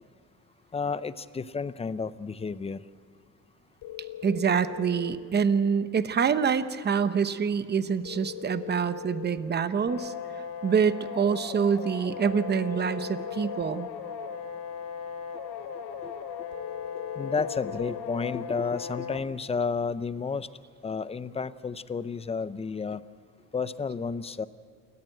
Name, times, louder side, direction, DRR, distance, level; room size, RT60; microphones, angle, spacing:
voice 1, 0.7-2.8 16.0-16.1 17.2-20.5 20.8-23.0 23.5-24.4, left 5 dB, 15° left, 15 dB, 0.5 m, -31 dB
sound 1, 3.8-5.2 8.0-9.4 12.3-13.7 16.5-17.9, left 10 dB, 90° left, 2.6 m, -40 dB
voice 2, 4.2-10.1 10.6-13.9, right 6 dB, 25° right, 12 dB, 0.8 m, -26 dB
sound 2, 9.9-19.2, left 6 dB, 70° left, 2.3 m, -38 dB
28.5 x 14.0 x 9.1 m, 2.3 s
cardioid pair, 145°, 39 cm